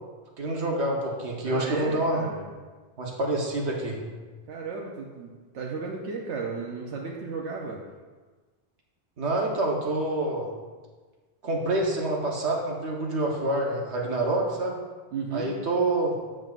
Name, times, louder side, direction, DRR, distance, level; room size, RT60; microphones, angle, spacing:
voice 1, 0.4-2.2 3.0-4.0 9.2-10.5 11.4-14.8 15.3-16.2, right 2 dB, 75° right, -1 dB, 1.4 m, -27 dB
voice 2, 1.4-2.5 4.5-7.8 15.1-15.6, right 4 dB, 90° right, -1 dB, 1.0 m, -34 dB
7.6 x 7.2 x 2.4 m, 1.4 s
omnidirectional pair, 1.2 m